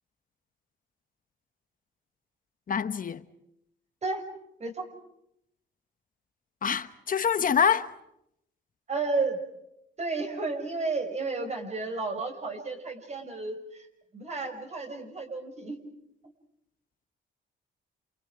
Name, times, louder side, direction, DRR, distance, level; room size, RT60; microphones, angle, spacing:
voice 1, 2.7-3.2 6.6-7.9, left 7 dB, 45° left, 1.1 m, -25 dB
voice 2, 8.9-9.4 10.0-13.9 14.1-15.8, right 3 dB, 35° right, 5.7 m, -32 dB
29.5 x 28.5 x 5.0 m
cardioid pair, 90°, 20 cm